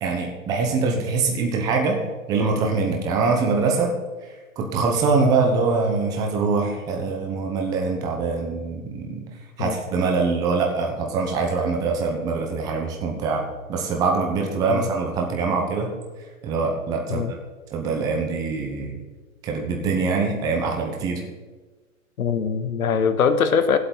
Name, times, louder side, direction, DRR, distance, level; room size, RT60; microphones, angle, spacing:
voice 1, 0.0-4.0 4.6-9.2 9.6-15.9 16.4-17.3 17.7-18.9 19.4-21.3, right 4 dB, 10° right, 1 dB, 0.7 m, -23 dB
voice 2, 22.2-23.8, left 6 dB, 85° left, 10 dB, 1.3 m, -22 dB
16.5 x 8.1 x 3.9 m, 1.4 s
hypercardioid pair, 165°, 42 cm